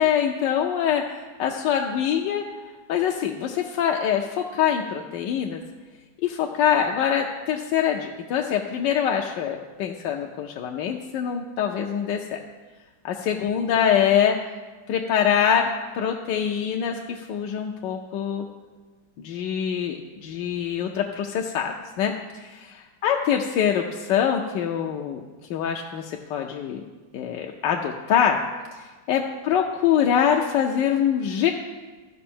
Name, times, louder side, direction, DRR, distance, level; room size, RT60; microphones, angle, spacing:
voice 1, 0.0-2.4 2.9-5.6 6.2-12.4 13.0-14.3 14.9-15.7 15.9-18.4 19.2-25.2 25.5-26.8 27.1-28.4 28.7-31.5, left 8 dB, 75° left, 1 dB, 1.2 m, -24 dB
13.0 x 5.4 x 4.3 m, 1.3 s
omnidirectional pair, 2.1 m